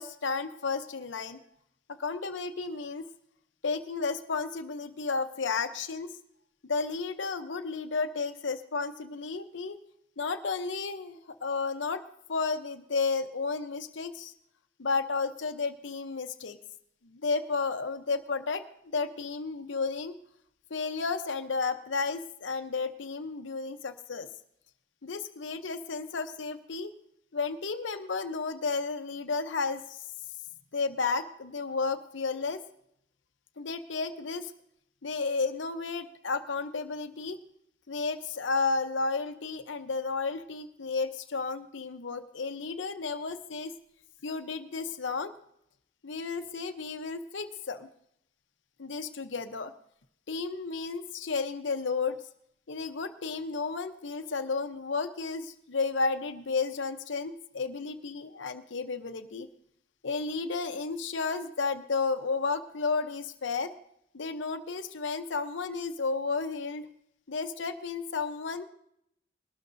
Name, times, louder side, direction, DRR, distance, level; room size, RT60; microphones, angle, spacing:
voice 1, 0.0-1.4 2.0-3.1 3.6-6.2 6.6-9.8 10.2-12.0 12.3-14.3 14.8-16.6 17.0-18.7 18.9-20.1 20.7-24.3 25.0-26.9 27.3-30.0 30.7-32.6 33.6-34.5 35.0-37.4 37.9-43.7 44.2-45.3 46.0-47.9 48.8-49.7 50.3-52.2 52.7-59.5 60.0-63.7 64.1-66.9 67.3-68.6, left 4 dB, 80° left, 8 dB, 0.8 m, -32 dB
20.5 x 12.5 x 2.6 m, 0.74 s
head